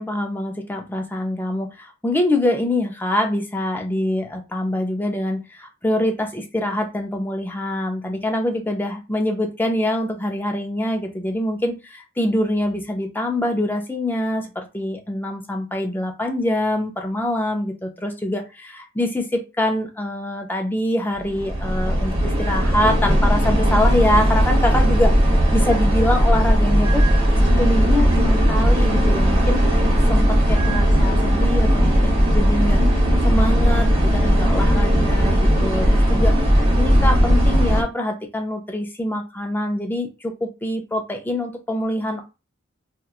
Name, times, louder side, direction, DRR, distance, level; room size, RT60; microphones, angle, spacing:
voice 1, 0.0-25.1 25.5-27.0 27.6-29.6 30.1-32.8 33.2-42.2, left 1 dB, 10° left, 3 dB, 0.4 m, -24 dB
sound 1, 21.2-37.8, equal, 30° right, 1.1 m, -17 dB
2.9 x 2.3 x 2.3 m, 0.28 s
head